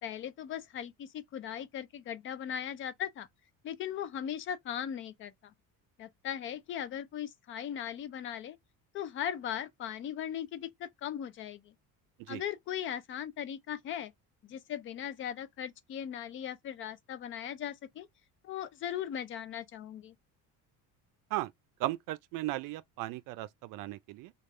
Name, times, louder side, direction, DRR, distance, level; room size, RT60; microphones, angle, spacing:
voice 1, 0.0-3.3 3.6-5.5 6.0-8.6 8.9-11.7 12.3-14.1 14.4-18.1 18.4-20.1, left 9 dB, 35° left, 0.4 m, -38 dB
voice 2, 21.8-24.3, right 16 dB, 65° right, 0.5 m, -36 dB
3.3 x 2.4 x 3.1 m
cardioid pair, 160°, 35 cm